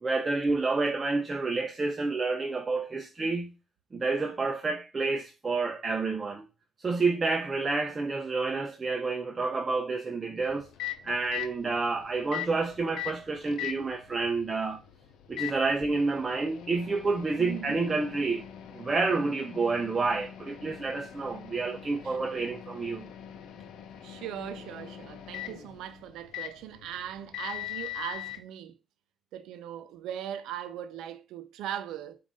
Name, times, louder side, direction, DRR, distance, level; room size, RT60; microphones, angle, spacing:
voice 1, 0.0-3.5 3.9-6.5 6.8-10.7 11.0-14.8 15.3-18.4 18.7-23.1, right 3 dB, 30° right, 0.6 m, -29 dB
Microwave oven, 10.4-28.4, left 13 dB, 85° left, 0.6 m, -42 dB
voice 2, 17.4-17.8 22.0-22.2 24.0-28.7 29.3-32.2, right 10 dB, 90° right, 0.5 m, -39 dB
5.2 x 2.6 x 3.7 m
cardioid pair, 90°, 0 cm